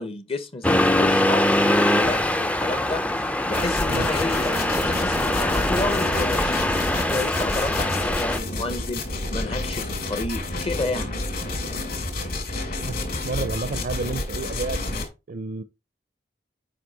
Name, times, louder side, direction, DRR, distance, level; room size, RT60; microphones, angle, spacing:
voice 1, 0.0-11.1, left 2 dB, 35° left, 0.7 m, -31 dB
Accelerating revving vroom, 0.6-8.4, left 1 dB, 10° left, 0.4 m, -23 dB
sound 1, 3.5-15.1, left 2 dB, 55° left, 2.7 m, -29 dB
voice 2, 13.2-14.8 15.3-15.6, right 3 dB, 55° right, 0.5 m, -30 dB
7.9 x 5.1 x 4.0 m
head